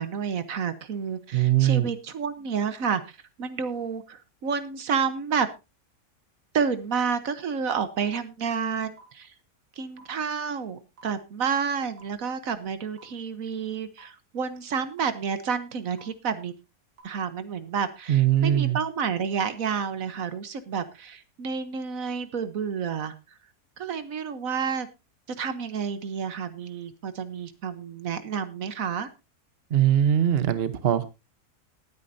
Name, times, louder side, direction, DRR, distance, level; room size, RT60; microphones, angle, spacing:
voice 1, 0.0-5.5 6.5-9.3 9.8-16.5 17.0-23.1 23.8-24.9 25.3-29.1, right 6 dB, 65° right, 12 dB, 1.3 m, -30 dB
voice 2, 1.3-1.9 18.1-18.8 29.7-31.1, right 11 dB, 45° right, 13 dB, 1.0 m, -21 dB
sound 1, 8.0-8.1 9.0-9.1 10.0-10.1 11.0-11.1 12.0-12.1 13.0-13.1 14.0-14.1 15.0-15.1 16.0-16.1 17.0-17.1, right 4 dB, 90° right, 4.2 m, -50 dB
19.5 x 9.6 x 2.6 m, 0.26 s
omnidirectional pair, 1.6 m